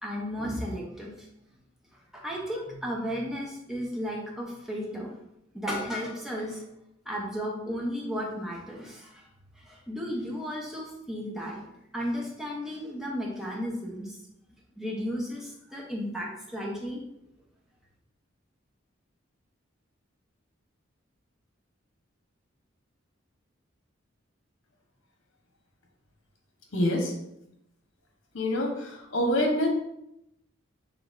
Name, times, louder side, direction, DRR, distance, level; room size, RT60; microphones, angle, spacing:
voice 1, 0.0-1.3 2.1-5.1 5.5-6.6 7.1-9.3 9.6-14.2 14.8-17.0, equal, ahead, -3 dB, 0.7 m, -34 dB
voice 2, 26.7-27.1 28.3-29.7, left 1 dB, 85° left, 1 dB, 1.0 m, -26 dB
4.9 x 3.3 x 2.6 m, 0.80 s
head